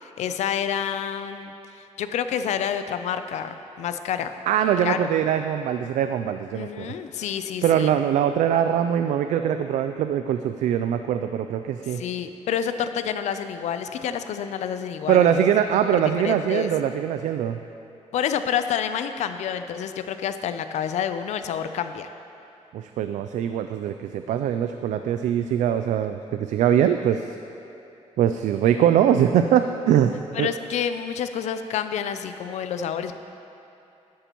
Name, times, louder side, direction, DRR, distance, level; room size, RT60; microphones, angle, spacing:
voice 1, 0.0-1.5 2.0-4.3 4.8-5.1 6.5-7.9 11.9-15.3 15.9-16.7 18.1-22.1 30.3-33.2, left 8 dB, 65° left, 9 dB, 0.5 m, -28 dB
voice 2, 4.5-6.9 7.6-12.0 15.1-17.6 22.7-27.4 28.2-30.5, right 9 dB, 75° right, 8 dB, 0.4 m, -22 dB
12.0 x 11.5 x 3.0 m, 2.8 s
cardioid pair, 150°, 12 cm